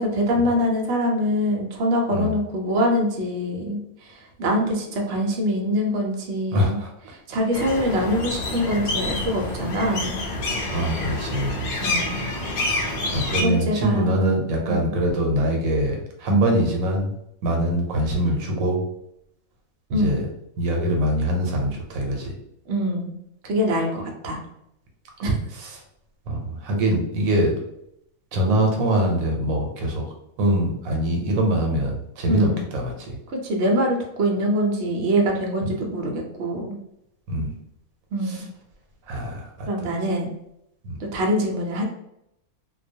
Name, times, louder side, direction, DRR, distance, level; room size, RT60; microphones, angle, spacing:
voice 1, 0.0-4.1 4.4-6.8 7.1-10.2 11.8-12.2 13.3-14.1 14.7-15.0 16.3-16.5 19.9-20.2 22.7-23.1 23.4-24.4 25.2-25.3 32.3-32.6 33.3-36.8 38.1-38.5 39.7-40.3 41.1-41.8, equal, 65° right, 1 dB, 0.7 m, -24 dB
voice 2, 6.5-6.9 10.7-11.7 13.1-17.1 17.4-18.8 19.9-20.3 20.6-22.3 25.6-25.7 26.3-27.6 28.3-30.0 30.4-33.2 37.3-37.5 38.3-38.4 39.1-39.7 40.8-40.9, right 1 dB, 85° right, 1 dB, 1.0 m, -23 dB
sound 1, 7.5-13.4, left 2 dB, 60° left, 0.5 m, -28 dB
2.2 x 2.2 x 2.6 m, 0.78 s
omnidirectional pair, 1.4 m